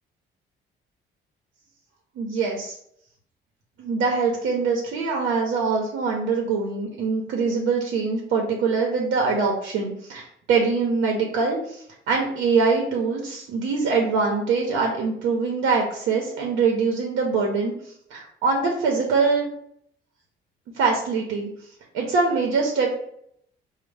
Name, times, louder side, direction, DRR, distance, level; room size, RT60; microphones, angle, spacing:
voice 1, 2.2-2.7 3.8-17.7 18.1-19.5 20.7-21.5 21.9-23.0, right 4 dB, 85° right, 0 dB, 0.7 m, -23 dB
5.1 x 2.1 x 3.2 m, 0.70 s
cardioid pair, 90°, 20 cm